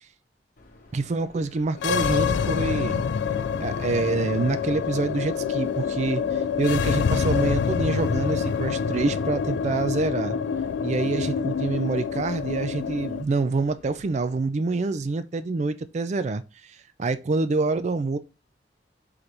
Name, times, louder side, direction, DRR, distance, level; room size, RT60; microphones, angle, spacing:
Subway metro underground, 0.6-14.4, left 4 dB, 50° left, 0.9 m, -51 dB
voice 1, 0.9-3.0 3.6-6.2 6.6-10.4 10.8-16.4 17.0-18.2, right 3 dB, 40° right, 0.4 m, -26 dB
sound 1, 1.7-13.2, left 6 dB, 75° left, 0.3 m, -26 dB
3.9 x 3.3 x 2.9 m
head